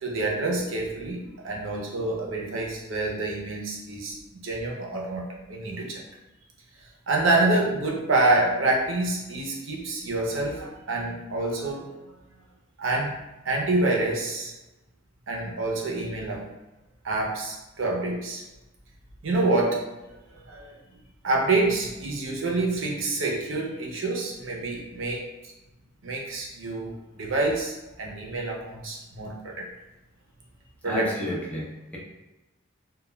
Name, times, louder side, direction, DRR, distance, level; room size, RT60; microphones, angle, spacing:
voice 1, 0.0-4.2 4.4-6.0 7.1-11.9 12.8-13.1 13.4-14.5 15.3-16.4 17.0-18.4 19.2-19.9 20.5-20.8 21.2-25.2 26.0-29.7 30.8-31.1, right 2 dB, 80° right, -1 dB, 0.6 m, -27 dB
voice 2, 30.8-32.0, equal, 5° left, -6 dB, 0.5 m, -31 dB
2.2 x 2.1 x 3.1 m, 1.0 s
head